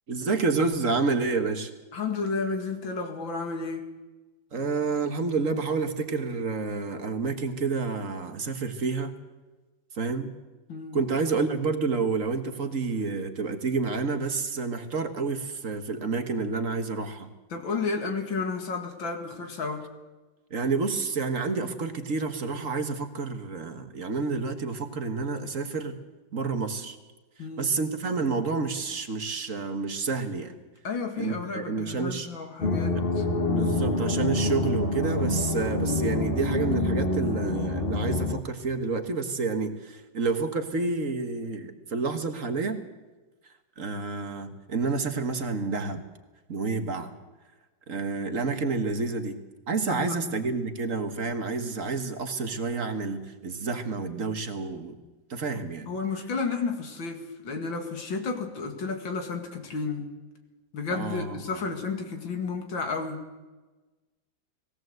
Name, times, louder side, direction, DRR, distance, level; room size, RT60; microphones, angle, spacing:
voice 1, 0.1-1.7 4.5-9.1 9.9-10.3 10.9-17.3 20.5-26.0 26.3-27.0 27.6-30.5 31.2-32.3 32.9-33.1 33.5-42.8 43.8-46.0 46.5-47.1 47.9-54.9 55.3-55.9 60.9-61.6, right 4 dB, 45° right, 7 dB, 1.7 m, -29 dB
voice 2, 1.9-3.9 10.7-11.0 17.5-19.9 27.4-27.8 30.8-33.2 34.3-34.4 49.9-50.2 55.5-60.1 60.7-63.3, left 4 dB, 85° left, 5 dB, 2.9 m, -32 dB
sound 1, 32.6-38.4, left 2 dB, 30° left, 1.6 m, -26 dB
20.0 x 17.0 x 7.9 m, 1.2 s
omnidirectional pair, 2.0 m